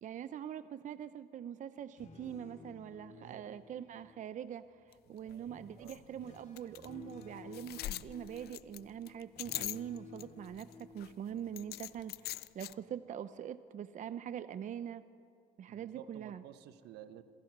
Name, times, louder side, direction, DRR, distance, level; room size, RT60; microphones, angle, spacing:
voice 1, 0.0-15.0 15.6-16.4, right 9 dB, 50° right, 13 dB, 0.7 m, -43 dB
sound 1, 1.8-4.7 5.4-12.4 12.7-13.1, left 4 dB, 45° left, 3.2 m, -55 dB
voice 2, 3.1-3.6 5.1-5.5 5.8-6.0 15.7-17.2, right 10 dB, 80° right, 11 dB, 1.3 m, -53 dB
sound 2, 4.9-5.0 5.3-5.4 5.9-6.0 6.6-6.9 7.2-7.3 7.5-10.2 10.5-11.1 11.6-12.7, left 15 dB, 70° left, 0.6 m, -42 dB
27.0 x 24.0 x 6.1 m, 2.3 s
cardioid pair, 110°, 17 cm